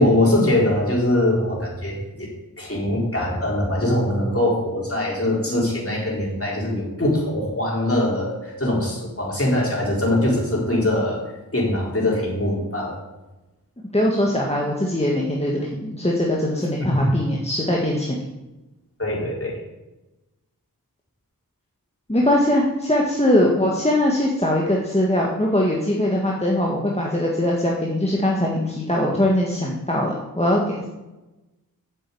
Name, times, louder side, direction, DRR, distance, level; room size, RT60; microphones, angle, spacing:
voice 1, 0.0-2.3 2.6-11.2 11.5-13.0 16.8-17.0 19.0-19.6, left 1 dB, 40° left, -3 dB, 4.5 m, -22 dB
voice 2, 13.9-18.2 22.1-30.9, left 1 dB, 15° left, -3 dB, 1.7 m, -21 dB
8.0 x 7.5 x 8.6 m, 1.0 s
wide cardioid pair, 45°, 36 cm